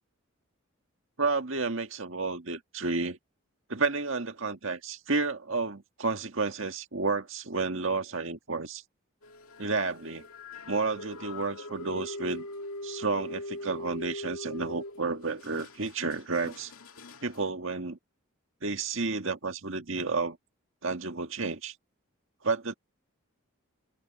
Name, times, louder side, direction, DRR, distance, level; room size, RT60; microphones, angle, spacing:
voice 1, 1.2-3.2 3.7-8.8 9.6-10.2 10.7-12.5 12.8-16.7 17.2-18.0 18.6-20.4 20.8-21.7 22.4-22.7, right 3 dB, 65° right, 1.8 m, -31 dB
sound 1, 9.2-17.5, left 1 dB, 85° left, 2.2 m, -42 dB
head